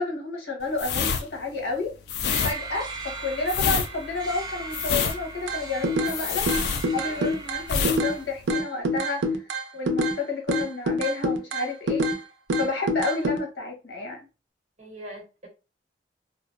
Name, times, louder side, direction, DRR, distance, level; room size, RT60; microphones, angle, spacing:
voice 1, 0.0-1.9 2.4-6.5 6.9-12.1 12.6-14.2, left 3 dB, 85° left, 0.9 m, -30 dB
sound 1, 0.7-7.3 7.6-8.0 8.3-8.5, left 6 dB, 70° left, 0.3 m, -27 dB
sound 2, 2.3-8.2, right 3 dB, 25° right, 0.3 m, -38 dB
sound 3, 5.5-6.2 6.5-8.2 8.5-10.2 10.5-12.2 12.5-13.4, equal, 90° right, 0.4 m, -25 dB
voice 2, 7.0-7.4 14.8-15.5, right 1 dB, 40° right, 1.0 m, -43 dB
2.5 x 2.0 x 2.3 m
head